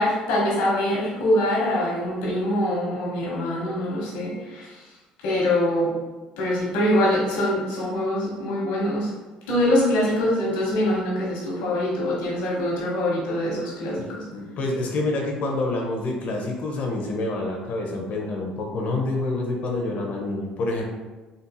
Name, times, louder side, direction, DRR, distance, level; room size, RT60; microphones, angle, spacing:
voice 1, 0.0-4.8 5.2-6.0 6.4-9.1 9.5-14.2, left 1 dB, 90° left, -6 dB, 1.2 m, -24 dB
voice 2, 14.3-20.8, left 2 dB, 60° left, 1 dB, 0.7 m, -27 dB
3.9 x 2.7 x 2.3 m, 1.2 s
supercardioid pair, 85°, 3 cm